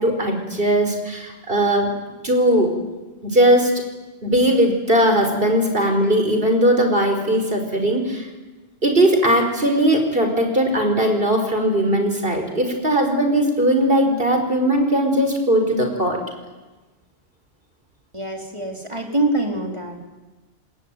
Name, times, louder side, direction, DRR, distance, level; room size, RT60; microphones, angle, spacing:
voice 1, 0.0-1.9 2.2-2.7 3.2-3.8 4.2-8.3 8.8-16.2, right 1 dB, 60° right, 5 dB, 5.3 m, -19 dB
voice 2, 18.1-20.1, right 2 dB, 30° right, 1 dB, 4.5 m, -24 dB
27.5 x 20.5 x 9.3 m, 1.2 s
omnidirectional pair, 1.1 m